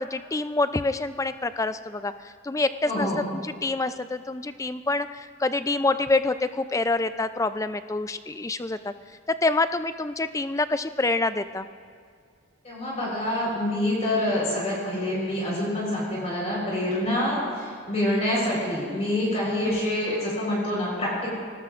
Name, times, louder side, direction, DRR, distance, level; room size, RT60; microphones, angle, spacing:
voice 1, 0.0-8.9 9.4-11.7 17.0-17.2 19.6-19.8, left 3 dB, 15° left, 11 dB, 0.4 m, -27 dB
voice 2, 2.9-3.2 12.6-21.3, left 1 dB, 30° left, -5 dB, 4.2 m, -26 dB
24.5 x 18.5 x 2.5 m, 2.2 s
head